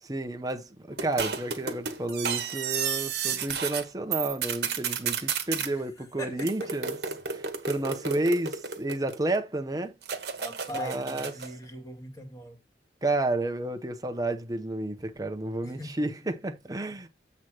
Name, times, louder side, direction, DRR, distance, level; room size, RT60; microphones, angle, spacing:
voice 1, 0.0-7.0 7.3-9.9 10.7-11.3 13.0-17.1, right 2 dB, 20° right, 0.9 m, -31 dB
sound 1, 1.0-3.8 4.1-5.7 6.4-9.4 10.0-11.5, right 7 dB, 65° right, 1.3 m, -32 dB
voice 2, 5.6-6.9 8.0-8.1 10.4-12.6 15.6-16.1, equal, 20° left, 1.9 m, -41 dB
8.2 x 3.2 x 6.0 m
head